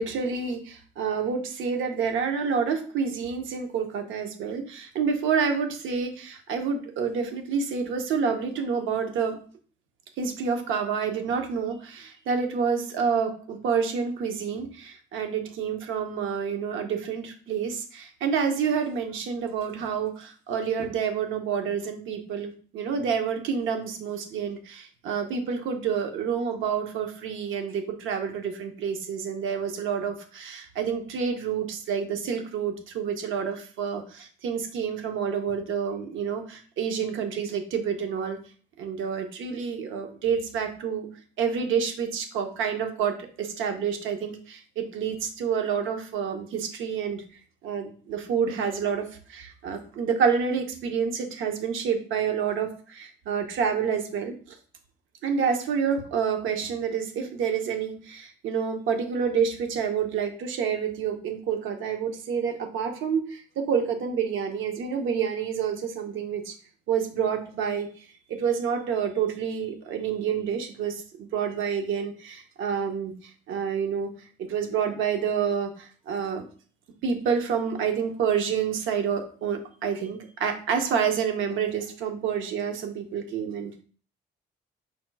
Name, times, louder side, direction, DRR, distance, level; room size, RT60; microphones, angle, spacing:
voice 1, 0.0-9.4 10.2-38.4 38.8-41.1 41.4-47.2 47.6-54.4 55.2-66.5 66.9-67.9 68.4-73.1 73.5-74.1 74.5-76.5 77.0-83.8, right 6 dB, 85° right, 5 dB, 0.8 m, -28 dB
5.1 x 2.2 x 4.5 m, 0.42 s
cardioid pair, 90°, 20 cm